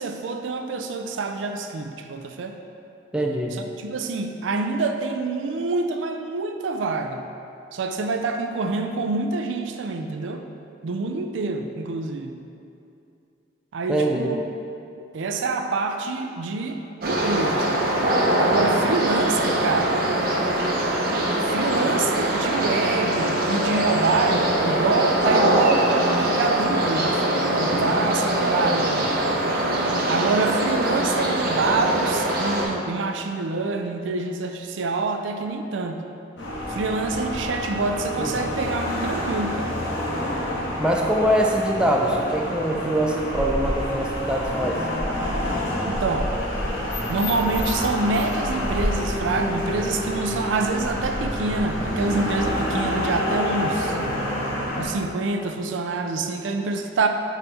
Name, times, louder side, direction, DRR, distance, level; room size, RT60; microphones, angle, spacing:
voice 1, 0.0-2.6 3.5-7.2 7.7-10.4 10.8-12.3 13.7-14.4 15.1-17.7 18.4-20.0 21.4-29.2 30.1-36.0 36.7-39.8 45.9-46.3 47.1-54.0 54.8-57.1, right 3 dB, 75° right, 5 dB, 0.4 m, -26 dB
voice 2, 3.1-3.6 13.9-14.3 38.2-38.5 40.8-44.8, right 1 dB, 5° right, -1 dB, 0.4 m, -23 dB
sound 1, 17.0-32.6, right 1 dB, 50° right, 0.8 m, -22 dB
sound 2, 36.4-54.9, left 1 dB, 70° left, 1.1 m, -28 dB
5.5 x 4.1 x 4.2 m, 2.6 s
head